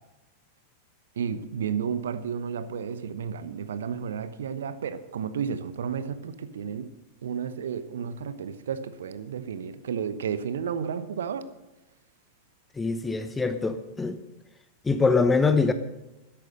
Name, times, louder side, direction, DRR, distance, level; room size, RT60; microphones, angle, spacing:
voice 1, 1.2-6.9 7.2-11.4, right 7 dB, 65° right, 13 dB, 0.9 m, -32 dB
voice 2, 12.8-14.2 14.8-15.7, left 4 dB, 15° left, 10 dB, 0.9 m, -23 dB
13.5 x 10.5 x 6.5 m, 1.0 s
figure-of-eight pair, 90°, 0 cm